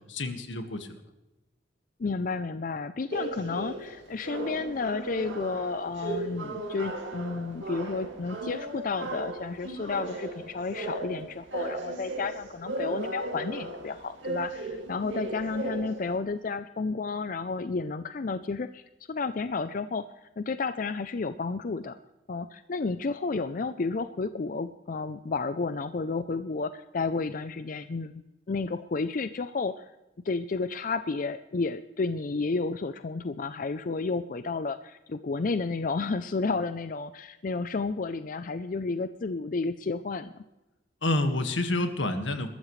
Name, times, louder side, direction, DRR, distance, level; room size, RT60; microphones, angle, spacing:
voice 1, 0.1-0.9 41.0-42.5, left 2 dB, 80° left, 7 dB, 1.7 m, -28 dB
voice 2, 2.0-18.8 19.1-20.1 20.4-22.0 22.3-28.2 28.5-29.9 30.2-40.4, left 4 dB, 45° left, 11 dB, 0.5 m, -31 dB
sound 1, 3.1-16.2, right 2 dB, 85° right, 2.4 m, -36 dB
21.5 x 13.5 x 3.2 m, 1.0 s
head